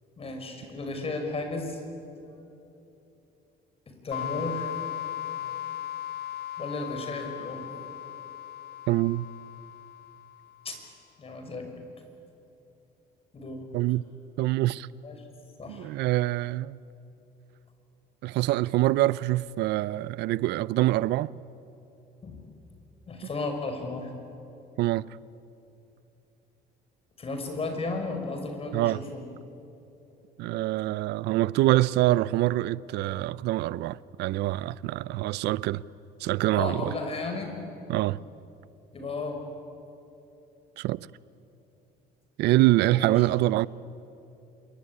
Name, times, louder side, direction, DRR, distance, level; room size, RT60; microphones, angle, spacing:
voice 1, 0.2-1.8 4.0-4.7 6.6-7.7 10.6-10.8 11.2-11.7 13.3-13.7 15.0-15.2 15.6-15.9 22.2-22.4 23.1-24.1 27.2-29.2 36.5-37.5 38.9-39.4 42.9-43.1, left 3 dB, 35° left, 5.7 m, -34 dB
sound 1, 4.1-10.6, left 11 dB, 75° left, 0.8 m, -37 dB
voice 2, 8.9-9.3 13.7-14.0 14.4-14.9 15.7-16.8 18.2-21.3 24.8-25.1 28.7-29.0 30.4-35.8 36.2-36.9 37.9-38.2 40.8-41.1 42.4-43.7, right 16 dB, 80° right, 0.6 m, -25 dB
27.0 x 22.5 x 9.8 m
cardioid pair, 110°, 17 cm